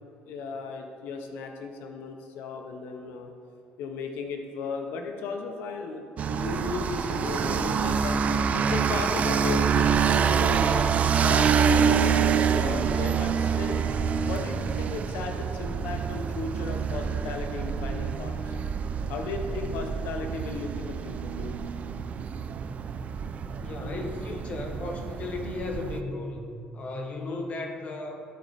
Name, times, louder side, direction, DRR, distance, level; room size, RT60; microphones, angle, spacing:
voice 1, 0.2-3.3 3.8-8.2 8.5-10.9 11.2-13.8 14.2-18.6 19.1-21.5 23.8-24.1 27.2-27.5, left 4 dB, 85° left, 4 dB, 0.7 m, -35 dB
sound 1, 6.2-26.0, right 7 dB, 45° right, 0.3 m, -26 dB
voice 2, 23.6-28.2, left 2 dB, 40° left, 3 dB, 1.1 m, -35 dB
12.0 x 4.2 x 4.1 m, 2.3 s
cardioid pair, 120°, 3 cm